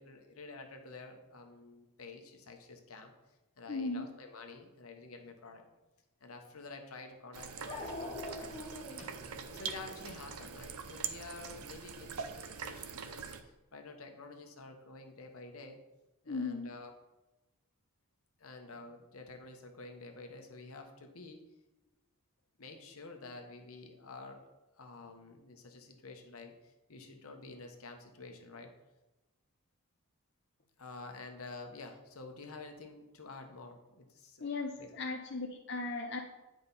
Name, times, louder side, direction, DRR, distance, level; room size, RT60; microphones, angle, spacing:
voice 1, 0.0-3.1 3.6-5.6 6.2-9.0 9.5-13.3 13.7-15.8 16.2-16.9 18.4-21.4 22.6-24.4 24.8-26.5 26.9-28.7 30.8-34.4 34.8-34.9, left 3 dB, 80° left, 4 dB, 1.1 m, -49 dB
voice 2, 3.7-4.1 16.3-16.7 34.4-36.2, left 3 dB, 50° left, 1 dB, 0.6 m, -37 dB
Dog, 6.6-6.7 7.7-11.1, left 2 dB, 30° left, 1.0 m, -44 dB
sound 1, 7.3-13.4, right 6 dB, 85° right, 0.6 m, -43 dB
9.1 x 5.2 x 4.1 m, 1.0 s
head